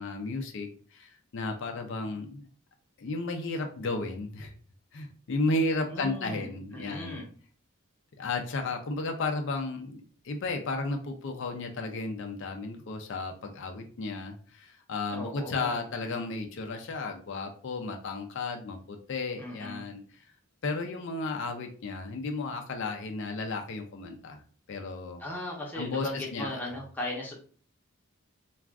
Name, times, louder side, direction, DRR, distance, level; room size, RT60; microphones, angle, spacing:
voice 1, 0.0-2.5 3.0-4.5 4.9-7.2 8.2-20.0 20.6-24.4 24.7-25.2 25.7-26.5, left 3 dB, 60° left, 4 dB, 0.4 m, -33 dB
voice 2, 5.9-7.2 15.1-15.8 19.4-19.8 25.2-27.3, left 1 dB, 10° left, -3 dB, 0.6 m, -37 dB
2.4 x 2.3 x 3.4 m, 0.43 s
head